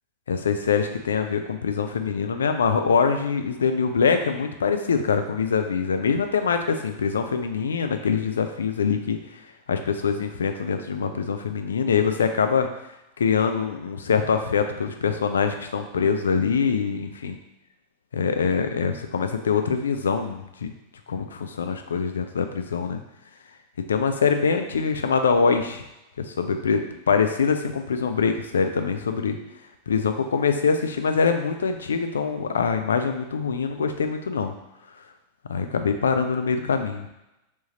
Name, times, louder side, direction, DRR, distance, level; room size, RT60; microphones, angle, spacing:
voice 1, 0.3-9.2 9.7-12.7 13.2-17.3 18.1-20.7 21.1-23.0 23.9-25.8 26.2-29.4 29.9-34.5 35.5-37.0, left 5 dB, 70° left, 7 dB, 0.3 m, -24 dB
3.4 x 3.0 x 2.7 m, 0.90 s
figure-of-eight pair, 90°, 0 cm